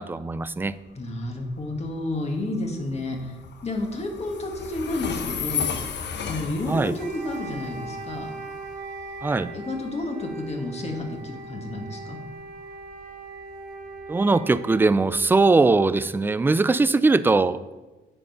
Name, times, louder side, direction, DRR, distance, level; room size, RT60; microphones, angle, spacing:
voice 1, 0.0-0.8 6.7-7.0 9.2-9.5 14.1-17.6, right 3 dB, 10° right, 15 dB, 0.3 m, -20 dB
Train, 0.6-15.3, left 7 dB, 60° left, 0.9 m, -37 dB
voice 2, 1.0-3.4 3.6-5.7 6.3-8.3 9.5-12.2, left 2 dB, 30° left, 2 dB, 1.7 m, -31 dB
Wind instrument woodwind instrument, 6.9-15.0, right 3 dB, 50° right, 1.3 m, -39 dB
9.8 x 4.6 x 5.5 m, 1.2 s
cardioid pair, 90°, 20 cm